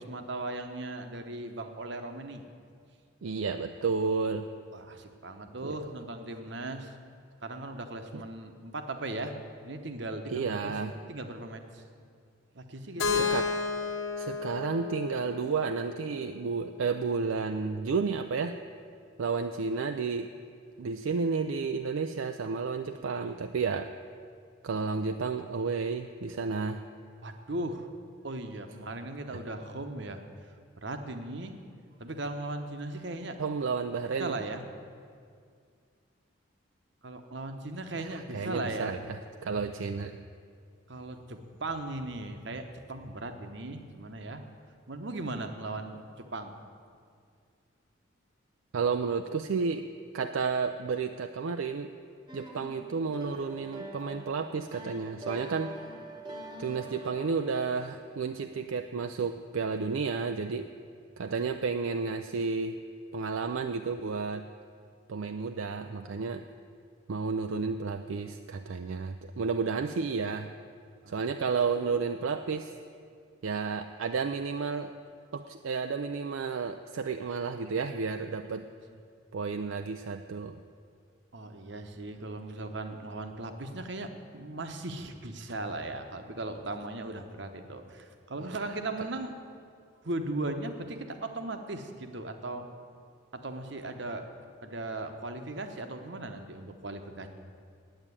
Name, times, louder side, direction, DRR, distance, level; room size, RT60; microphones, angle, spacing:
voice 1, 0.0-2.4 4.7-7.0 7.4-9.3 9.6-11.8 12.5-13.3 27.2-27.9 28.2-30.2 30.8-31.5 32.0-33.4 34.2-34.6 37.0-38.9 40.9-44.4 44.9-46.5 71.0-71.2 78.5-78.7 81.3-89.4 90.0-92.7 93.3-94.3 94.6-97.3, right 2 dB, 60° right, 7 dB, 1.0 m, -38 dB
voice 2, 3.2-4.5 5.6-5.7 8.1-8.2 10.3-10.9 13.1-13.5 14.2-18.5 19.2-20.3 20.8-23.9 24.6-26.8 33.4-34.4 38.0-39.0 39.4-40.2 48.7-49.9 50.1-51.9 52.3-55.8 56.6-60.7 61.2-62.8 63.1-64.5 65.1-66.5 67.1-70.5 71.1-72.7 73.4-74.9 75.3-78.7 79.3-80.6 88.4-88.5, right 5 dB, 75° right, 7 dB, 0.4 m, -31 dB
Keyboard (musical), 13.0-16.9, left 5 dB, 75° left, 1.3 m, -33 dB
sound 1, 52.3-58.2, right 1 dB, 20° right, 1.1 m, -44 dB
9.0 x 8.8 x 9.7 m, 2.2 s
head